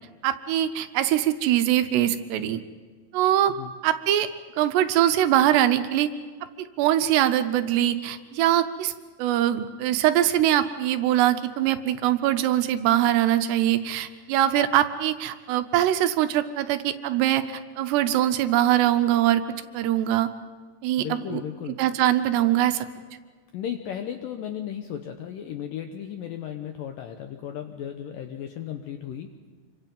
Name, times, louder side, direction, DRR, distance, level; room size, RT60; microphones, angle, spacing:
voice 1, 0.2-2.6 3.1-3.5 3.8-4.3 4.6-6.1 6.6-8.9 9.2-19.4 19.7-20.3 20.8-21.4 21.8-22.9, right 12 dB, 80° right, 10 dB, 2.9 m, -22 dB
voice 2, 21.0-21.8 23.5-29.5, left 9 dB, 75° left, 6 dB, 2.0 m, -35 dB
27.0 x 24.0 x 5.4 m, 1.5 s
omnidirectional pair, 5.0 m